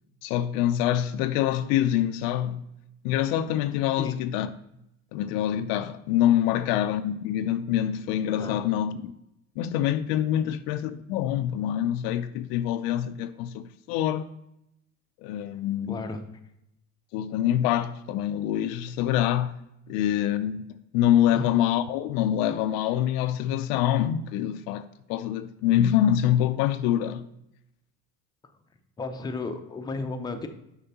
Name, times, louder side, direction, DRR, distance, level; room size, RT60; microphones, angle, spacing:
voice 1, 0.2-2.6 3.0-4.5 5.1-9.1 9.6-14.3 15.2-16.0 17.1-19.6 19.9-27.3, left 11 dB, 65° left, 0.5 m, -25 dB
voice 2, 8.3-8.6 10.3-10.6 15.5-16.2 21.3-21.4 29.0-30.5, left 3 dB, 10° left, 0.5 m, -34 dB
6.6 x 5.0 x 2.8 m
supercardioid pair, 90°, 40 cm